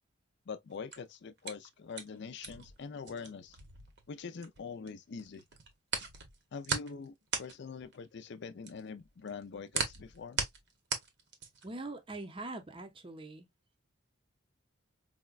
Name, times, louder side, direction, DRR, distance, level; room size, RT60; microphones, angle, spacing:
voice 1, 0.5-3.6 4.1-5.4 6.5-10.4, left 5 dB, 55° left, 0.4 m, -44 dB
sound 1, 0.7-4.9 5.2-11.8, right 5 dB, 55° right, 0.9 m, -38 dB
voice 2, 11.6-13.5, right 2 dB, 25° right, 0.6 m, -43 dB
4.8 x 2.2 x 2.3 m
head